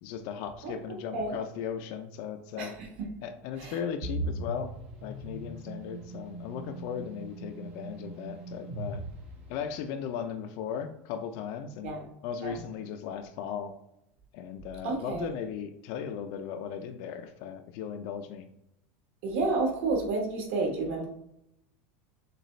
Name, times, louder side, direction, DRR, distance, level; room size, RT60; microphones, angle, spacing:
voice 1, 0.0-2.7 3.2-4.7 5.0-9.0 9.5-11.9 12.2-13.7 14.3-18.4, left 8 dB, 45° left, 8 dB, 0.5 m, -37 dB
voice 2, 2.6-3.1 3.6-3.8 11.8-12.0 12.4-12.6 14.8-15.3 19.2-21.1, right 3 dB, 60° right, 1 dB, 1.3 m, -30 dB
sound 1, 4.0-10.0, right 1 dB, 90° right, 1.7 m, -39 dB
6.5 x 2.3 x 3.2 m, 0.81 s
supercardioid pair, 175°, 7 cm